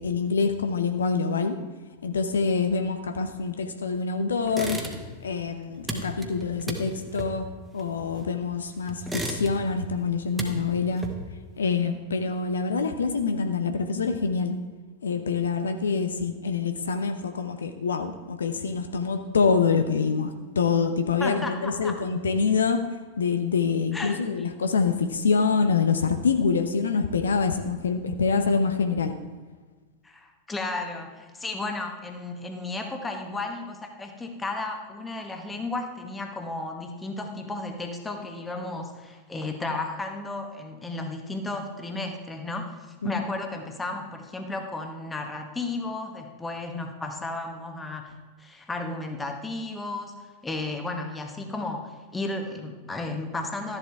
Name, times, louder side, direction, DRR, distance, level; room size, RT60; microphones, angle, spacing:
voice 1, 0.0-1.6 2.0-4.8 5.2-11.1 11.6-14.6 15.0-22.8 23.2-29.2 43.0-43.2, left 5 dB, 70° left, 8 dB, 0.8 m, -26 dB
sound 1, 4.5-5.3 5.5-8.5 8.9-9.8 10.1-11.5, right 1 dB, 5° right, 1.6 m, -34 dB
voice 2, 21.2-21.9 23.9-24.2 30.0-50.1 50.4-53.8, left 2 dB, 10° left, 4 dB, 1.4 m, -33 dB
13.5 x 11.0 x 3.6 m, 1.4 s
figure-of-eight pair, 90°, 0 cm